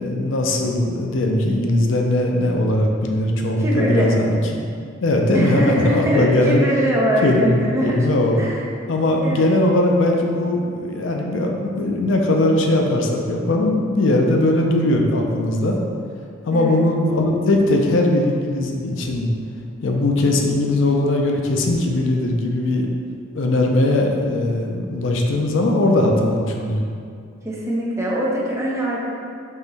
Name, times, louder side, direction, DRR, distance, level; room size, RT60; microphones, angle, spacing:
voice 1, 0.0-4.6 5.0-6.6 7.2-8.4 8.9-15.8 16.4-19.3 19.8-22.9 23.3-26.8, left 1 dB, 70° left, 1 dB, 0.4 m, -19 dB
voice 2, 3.6-4.1 5.3-8.0 8.3-8.7 9.2-9.5 16.5-16.8 27.4-29.1, equal, 15° right, -5 dB, 0.6 m, -22 dB
3.8 x 2.9 x 4.0 m, 2.3 s
head